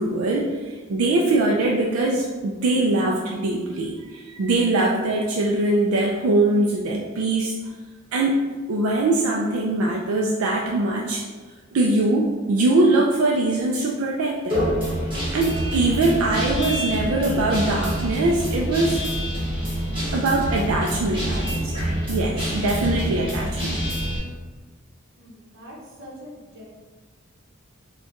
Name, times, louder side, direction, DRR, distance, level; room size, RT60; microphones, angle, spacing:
voice 1, 0.0-7.6 8.1-8.4 8.7-11.2 11.7-14.6 15.3-19.0 20.1-23.8, right 2 dB, 85° right, -1 dB, 0.4 m, -22 dB
Guitar, 14.5-24.2, equal, 25° right, 1.4 m, -26 dB
voice 2, 25.2-26.6, equal, 55° right, -3 dB, 0.8 m, -43 dB
4.3 x 2.3 x 2.9 m, 1.3 s
head